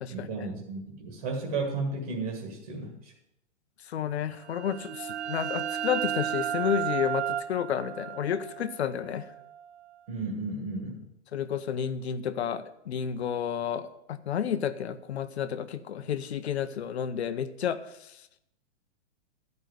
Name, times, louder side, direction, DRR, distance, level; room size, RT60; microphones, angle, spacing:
voice 1, 0.1-3.1 10.1-11.0, right 3 dB, 30° right, 2 dB, 1.7 m, -34 dB
voice 2, 3.8-9.3 11.3-18.4, left 8 dB, 60° left, 11 dB, 0.9 m, -31 dB
sound 1, 4.4-9.9, right 11 dB, 65° right, 0.7 m, -34 dB
13.0 x 5.4 x 7.8 m, 0.80 s
hypercardioid pair, 180°, 36 cm